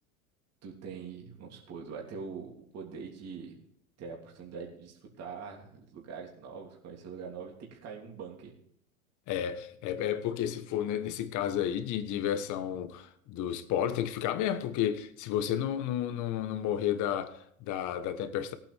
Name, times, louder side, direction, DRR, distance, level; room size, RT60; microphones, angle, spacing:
voice 1, 0.6-3.6 4.0-8.5, right 5 dB, 35° right, 3.1 m, -43 dB
voice 2, 9.3-18.5, left 10 dB, 45° left, 1.3 m, -32 dB
18.5 x 8.8 x 3.5 m
hypercardioid pair, 95°, 42 cm